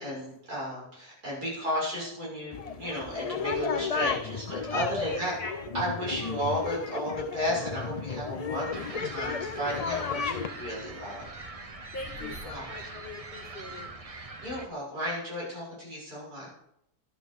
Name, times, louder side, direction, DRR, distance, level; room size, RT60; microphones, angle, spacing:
voice 1, 0.0-5.3 5.7-11.3 12.2-12.6 14.4-16.5, equal, 75° right, -5 dB, 7.2 m, -33 dB
sound 1, 2.5-10.5, left 5 dB, 80° left, 0.3 m, -33 dB
voice 2, 4.0-4.4 5.0-5.8 9.9-10.1 10.4-11.2 11.9-14.0, left 3 dB, 35° left, 0 dB, 1.5 m, -43 dB
sound 2, 8.7-14.7, right 3 dB, 30° right, 0.8 m, -42 dB
11.5 x 9.7 x 6.6 m, 0.79 s
omnidirectional pair, 1.6 m